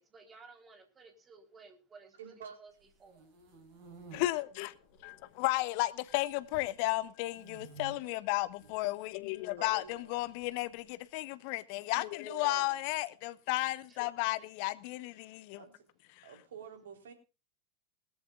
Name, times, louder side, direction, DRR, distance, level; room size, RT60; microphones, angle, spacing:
voice 1, 0.0-2.7 3.0-3.3 13.9-14.0, right 4 dB, 20° right, 3.8 m, -56 dB
voice 2, 2.2-2.6 5.1-5.3 9.6-10.2 12.2-12.8 15.6-15.8 16.2-17.1, right 7 dB, 60° right, 3.8 m, -49 dB
sound 1, 2.8-4.2 4.9-5.5 5.8-6.7 7.3-7.9 8.5-8.7 9.9-10.8, right 4 dB, 40° right, 6.5 m, -52 dB
voice 3, 4.1-15.6 16.1-16.3, left 19 dB, 45° left, 0.8 m, -34 dB
21.0 x 13.5 x 2.4 m
figure-of-eight pair, 90°, 0 cm